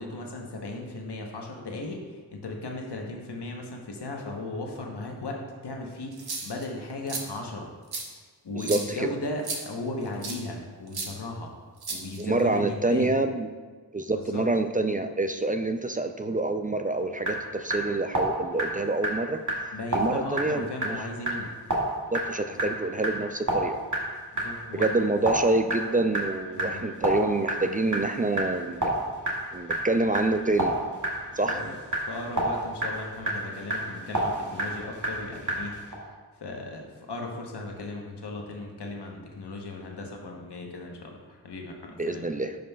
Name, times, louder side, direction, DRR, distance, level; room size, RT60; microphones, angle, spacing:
voice 1, 0.0-7.7 8.4-11.5 11.9-13.1 14.1-14.5 19.7-21.5 22.5-22.7 24.3-24.9 26.5-26.9 31.4-36.0 36.3-42.3, left 2 dB, 90° left, 1 dB, 1.0 m, -37 dB
sound 1, 6.1-6.6 7.1-7.2 7.9-8.0 8.6-8.9 9.4-9.6 10.2-10.4 10.9-11.1 11.8-12.4, right 4 dB, 70° right, 1.0 m, -33 dB
voice 2, 8.7-9.1 12.2-13.5 13.9-19.4 19.9-21.0 22.1-23.8 24.8-28.9 29.5-30.8 31.4-31.5 42.0-42.6, right 2 dB, 25° right, 8 dB, 0.3 m, -27 dB
sound 2, 16.9-35.9, right 1 dB, 50° right, 1.8 m, -31 dB
10.5 x 5.2 x 2.3 m, 1.5 s
wide cardioid pair, 60°, 39 cm